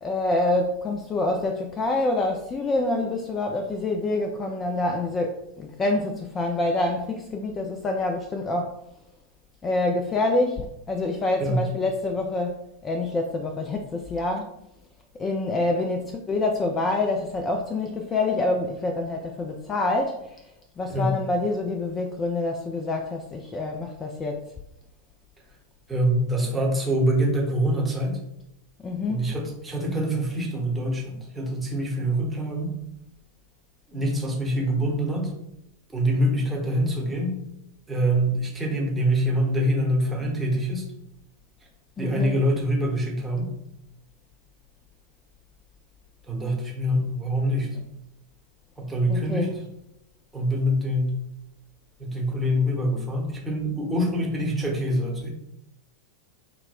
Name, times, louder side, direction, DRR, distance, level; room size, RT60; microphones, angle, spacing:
voice 1, 0.0-8.8 9.6-14.5 15.2-20.4 20.8-24.5 28.8-29.3 42.0-42.4 49.1-49.5, left 2 dB, 20° left, 3 dB, 0.3 m, -26 dB
voice 2, 25.9-28.2 29.1-32.8 33.9-35.3 35.9-37.4 37.9-40.9 42.0-43.5 46.3-47.8 48.8-49.5 50.3-51.2 52.0-55.3, equal, 10° right, -1 dB, 0.9 m, -25 dB
5.8 x 2.1 x 2.3 m, 0.83 s
figure-of-eight pair, 90°, 0 cm